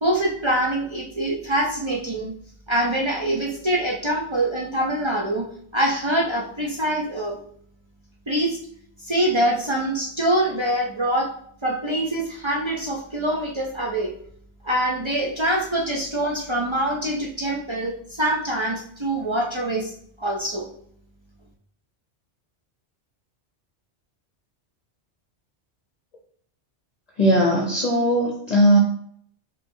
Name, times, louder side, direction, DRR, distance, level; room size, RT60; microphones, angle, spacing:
voice 1, 0.0-2.3 2.7-5.5 5.7-7.4 8.3-8.6 9.0-11.3 11.6-14.1 14.6-19.9 20.2-20.7, right 1 dB, 35° right, -3 dB, 0.5 m, -24 dB
voice 2, 27.2-28.8, equal, 40° left, -2 dB, 0.8 m, -18 dB
6.0 x 2.9 x 2.7 m, 0.64 s
omnidirectional pair, 1.2 m